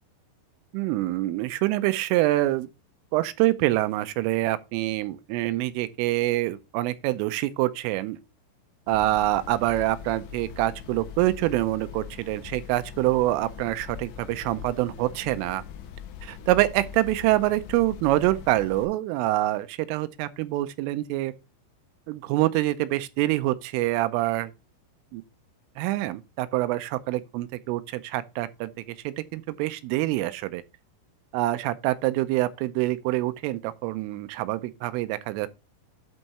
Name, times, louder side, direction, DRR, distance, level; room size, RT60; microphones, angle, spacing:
voice 1, 0.7-2.7 3.1-8.2 8.9-15.6 16.2-21.3 22.1-24.5 25.1-25.2 25.8-28.7 29.0-30.6 31.3-35.5, right 16 dB, 90° right, 3.2 m, -26 dB
sound 1, 8.9-18.9, left 8 dB, 75° left, 3.3 m, -42 dB
11.0 x 4.6 x 4.1 m
omnidirectional pair, 5.7 m